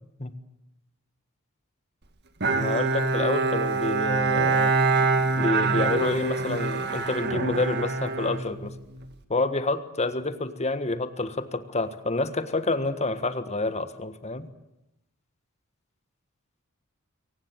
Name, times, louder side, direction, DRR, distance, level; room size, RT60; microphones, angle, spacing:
Bowed string instrument, 2.4-9.1, right 3 dB, 50° right, 1.9 m, -25 dB
voice 1, 2.5-4.7 5.4-8.7 9.3-14.5, left 2 dB, 30° left, 11 dB, 1.6 m, -28 dB
23.0 x 18.5 x 9.1 m, 0.90 s
head